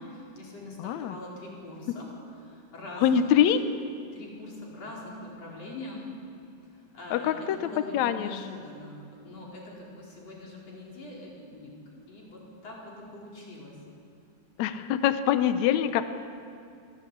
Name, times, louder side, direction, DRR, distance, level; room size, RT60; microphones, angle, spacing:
voice 1, 0.0-2.1 2.4-3.4 4.1-6.1 6.6-11.7 12.1-13.8, left 2 dB, 40° left, -3 dB, 5.5 m, -43 dB
voice 2, 0.8-1.1 3.0-3.6 7.1-7.6 7.9-8.5 14.6-16.0, left 9 dB, 85° left, 10 dB, 1.5 m, -24 dB
24.5 x 17.0 x 8.6 m, 2.5 s
omnidirectional pair, 4.4 m